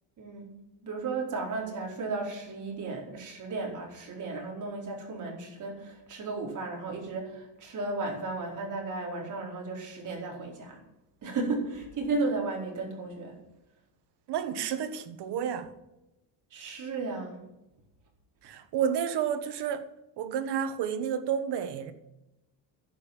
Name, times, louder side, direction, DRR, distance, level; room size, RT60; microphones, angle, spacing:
voice 1, 0.2-0.6 0.8-10.8 11.2-13.4 16.5-17.4, right 3 dB, 45° right, 4.5 m, -34 dB
voice 2, 14.3-15.7 18.4-19.9 20.2-21.9, right 8 dB, 70° right, 1.6 m, -30 dB
11.0 x 8.3 x 9.5 m
cardioid pair, 155°, 41 cm